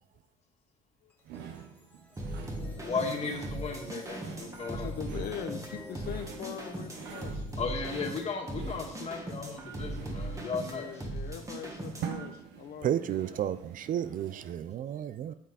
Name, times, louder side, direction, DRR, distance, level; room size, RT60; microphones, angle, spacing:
sound 1, 1.1-10.4, left 1 dB, 10° left, 1.6 m, -50 dB
sound 2, 1.2-14.7, right 8 dB, 85° right, 1.1 m, -46 dB
sound 3, 2.2-12.3, right 1 dB, 20° right, 1.7 m, -39 dB
voice 1, 2.6-4.9 7.6-11.1, left 4 dB, 40° left, 2.0 m, -36 dB
voice 2, 4.6-7.4 10.6-13.0, left 9 dB, 65° left, 0.8 m, -41 dB
voice 3, 12.8-15.3, right 10 dB, 55° right, 0.5 m, -32 dB
9.0 x 7.7 x 4.2 m
cardioid pair, 110°, 17 cm